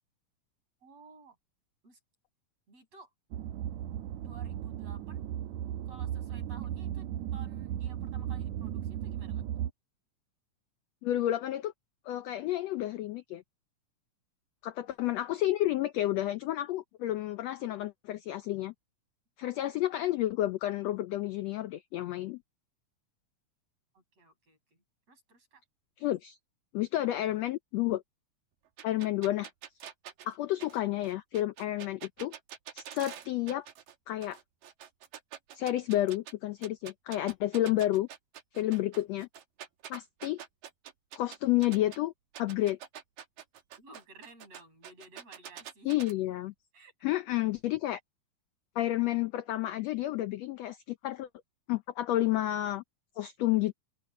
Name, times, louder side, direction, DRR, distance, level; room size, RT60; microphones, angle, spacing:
voice 1, 0.8-1.4 1.8-2.0 2.7-3.1 4.2-5.3 5.8-9.4 23.9-25.6 43.8-45.9 46.7-46.9, right 3 dB, 50° right, 8.5 m, -55 dB
sound 1, 3.3-9.7, right 11 dB, 70° right, 1.9 m, -36 dB
voice 2, 11.0-11.7 12.1-13.4 14.6-18.7 19.4-22.4 26.0-26.4 26.7-28.0 28.8-29.5 30.2-32.3 32.7-33.7 34.1-34.4 35.5-38.1 38.5-39.3 39.9-40.4 41.2-42.1 42.4-42.8 45.8-46.5 47.0-48.0 48.8-51.3 51.7-52.8 53.2-53.7, left 14 dB, 85° left, 1.4 m, -30 dB
sound 2, 28.8-33.9 34.2-36.3 36.6-42.0 42.3-46.1, right 9 dB, 90° right, 3.4 m, -46 dB
open air
omnidirectional pair, 3.8 m